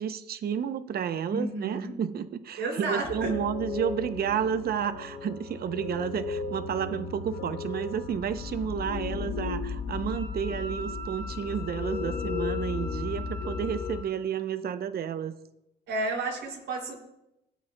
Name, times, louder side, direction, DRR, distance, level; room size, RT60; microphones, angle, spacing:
voice 1, 0.0-15.4, right 8 dB, 50° right, 11 dB, 0.6 m, -31 dB
voice 2, 1.3-1.9 2.6-3.3 15.9-17.0, right 2 dB, 85° right, -3 dB, 2.8 m, -31 dB
sound 1, 3.0-14.0, left 5 dB, 75° left, 0.9 m, -35 dB
Wind instrument woodwind instrument, 10.1-14.1, equal, 35° left, 2.2 m, -42 dB
17.0 x 8.6 x 2.2 m, 0.88 s
cardioid pair, 90°, 20 cm